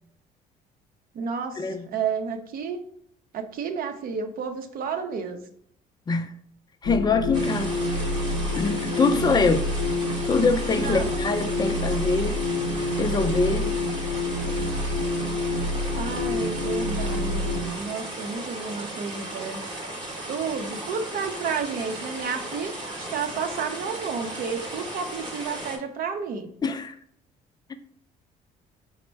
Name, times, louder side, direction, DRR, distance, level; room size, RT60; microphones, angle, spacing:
voice 1, 1.1-2.8 3.3-5.4 9.1-9.5 10.7-11.1 15.7-19.6 20.3-26.5, right 5 dB, 60° right, 0.6 m, -31 dB
sound 1, 6.8-17.8, left 2 dB, 85° left, 0.7 m, -28 dB
voice 2, 6.8-7.8 8.6-9.6 10.3-12.4 13.0-13.7 26.6-26.9 27.7-27.8, left 4 dB, 25° left, 0.4 m, -24 dB
sound 2, 7.3-25.8, right 1 dB, 30° right, 0.9 m, -36 dB
4.2 x 2.1 x 4.5 m
cardioid pair, 110°, 17 cm